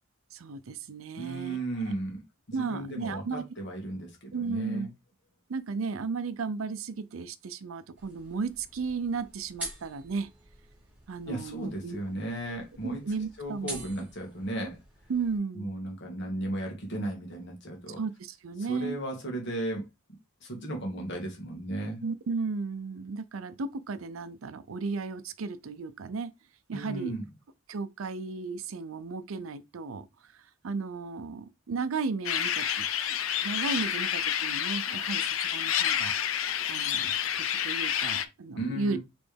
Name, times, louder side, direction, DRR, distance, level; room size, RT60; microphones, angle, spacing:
voice 1, 0.3-1.6 2.5-3.4 4.3-4.9 5.5-10.3 11.1-12.0 12.8-13.8 15.1-15.7 18.0-19.0 22.0-26.3 26.7-27.1 27.7-30.0 30.6-32.8 33.1-36.1 36.7-39.0, right 4 dB, 85° right, 0.5 m, -34 dB
voice 2, 1.2-4.9 11.3-13.0 13.4-14.8 15.5-18.0 18.7-19.8 20.4-22.0 26.7-27.3 38.5-39.0, right 1 dB, 60° left, 1.7 m, -35 dB
sound 1, 8.0-15.4, right 1 dB, 5° right, 1.6 m, -46 dB
sound 2, 32.2-38.2, left 9 dB, 85° left, 0.5 m, -29 dB
4.2 x 3.3 x 3.3 m
head